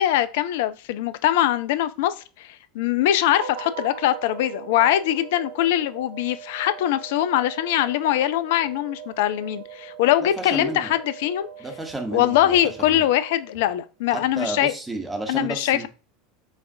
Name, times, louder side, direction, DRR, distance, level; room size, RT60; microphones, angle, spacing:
voice 1, 0.0-11.5 12.1-14.7 15.3-15.9, left 12 dB, 60° left, 0.3 m, -22 dB
sound 1, 3.3-13.8, right 8 dB, 80° right, 0.4 m, -40 dB
voice 2, 10.2-10.9 11.6-13.0 14.1-15.9, right 2 dB, 10° right, 0.8 m, -32 dB
5.1 x 2.4 x 2.6 m
figure-of-eight pair, 80°, 0 cm